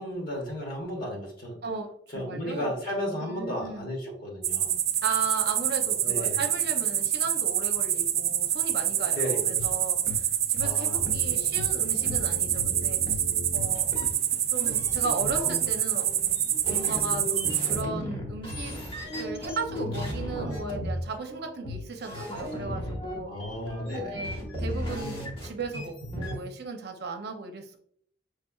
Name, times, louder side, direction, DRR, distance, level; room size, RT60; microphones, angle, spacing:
voice 1, 0.0-1.6 2.1-4.7 6.0-6.4 9.1-9.5 10.6-11.0 23.3-24.3, equal, 55° left, 0 dB, 1.4 m, -34 dB
voice 2, 2.1-2.7 3.2-3.9 5.0-13.0 13.5-14.0 14.5-16.1 16.7-18.7 19.2-23.3 24.0-27.8, right 3 dB, 60° right, 4 dB, 0.7 m, -36 dB
sound 1, 4.4-17.8, right 10 dB, 35° right, 0.3 m, -27 dB
sound 2, 9.6-9.7 10.1-10.2 10.6-10.7 10.9-26.4, equal, 30° left, 1.3 m, -36 dB
5.6 x 3.3 x 2.3 m, 0.63 s
head